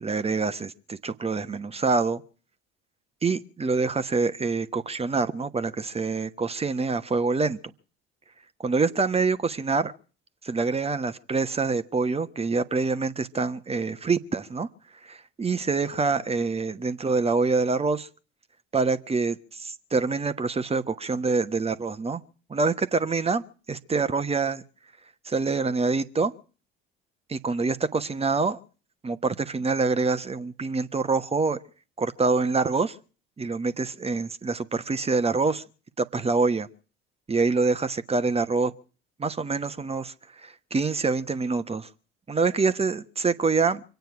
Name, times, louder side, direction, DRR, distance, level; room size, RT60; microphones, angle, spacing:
voice 1, 0.0-2.2 3.2-7.6 8.6-9.9 10.4-14.7 15.0-18.1 18.7-22.2 22.5-24.6 25.2-26.3 27.3-28.6 29.0-31.6 32.0-32.9 33.4-35.6 36.0-36.7 37.3-38.7 39.2-41.9 42.3-43.8, right 4 dB, 20° right, 1.2 m, -26 dB
25.5 x 9.3 x 5.9 m
hypercardioid pair, 65°, 30 cm